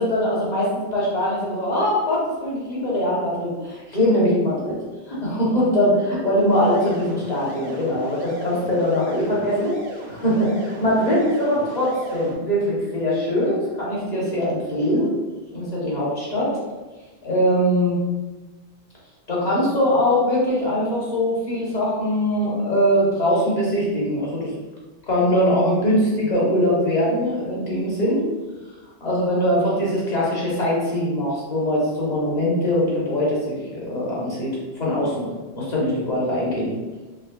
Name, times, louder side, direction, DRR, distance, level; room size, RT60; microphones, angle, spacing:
voice 1, 0.0-4.7 5.2-9.7 10.1-15.1 15.5-16.5 17.2-18.0 19.3-24.5 25.1-28.2 29.0-35.3 35.5-36.7, equal, 40° left, -6 dB, 1.0 m, -22 dB
sound 1, 6.5-12.3, right 1 dB, 50° right, 0.7 m, -36 dB
3.7 x 3.0 x 2.3 m, 1.2 s
omnidirectional pair, 1.2 m